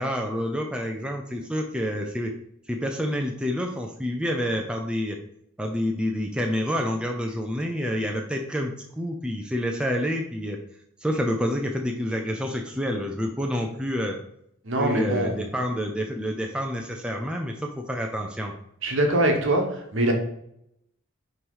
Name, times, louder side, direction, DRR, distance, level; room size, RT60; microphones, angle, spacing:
voice 1, 0.0-2.3 2.7-5.2 5.6-10.6 11.0-14.2 14.8-18.5, equal, 5° right, 1 dB, 0.5 m, -28 dB
voice 2, 14.6-15.3 18.8-20.1, right 1 dB, 60° right, 2 dB, 1.3 m, -23 dB
5.9 x 3.2 x 5.4 m, 0.75 s
head